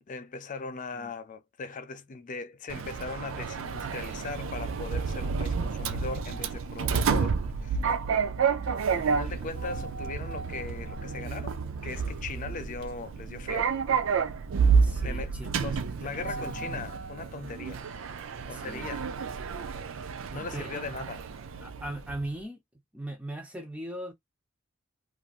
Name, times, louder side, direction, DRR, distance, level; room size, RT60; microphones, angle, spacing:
voice 1, 0.1-7.8 8.9-11.6 11.8-13.7 15.0-17.8 18.5-19.1 20.3-21.2, left 4 dB, 35° left, 0.4 m, -39 dB
Sliding door, 2.7-22.3, right 5 dB, 60° right, 0.4 m, -30 dB
voice 2, 14.8-15.5 16.0-16.8 18.5-18.9 20.3-20.9 21.6-22.6 22.9-24.1, right 1 dB, 5° right, 0.6 m, -39 dB
3.0 x 2.6 x 2.3 m
head